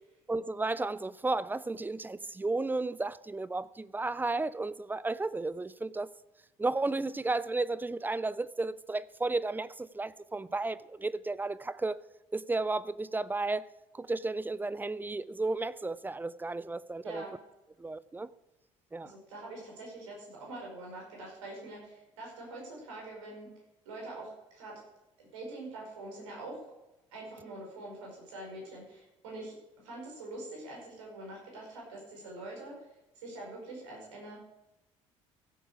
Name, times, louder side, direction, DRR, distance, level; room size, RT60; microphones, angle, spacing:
voice 1, 0.3-6.1 6.6-12.0 12.3-17.3 17.8-18.3 18.9-19.1, right 3 dB, 10° right, 0.5 m, -33 dB
voice 2, 19.0-23.5 23.8-24.7 25.2-26.6 27.1-32.9 33.1-34.4, right 2 dB, 70° right, 5.0 m, -44 dB
15.5 x 8.7 x 4.9 m
figure-of-eight pair, 55°, 17 cm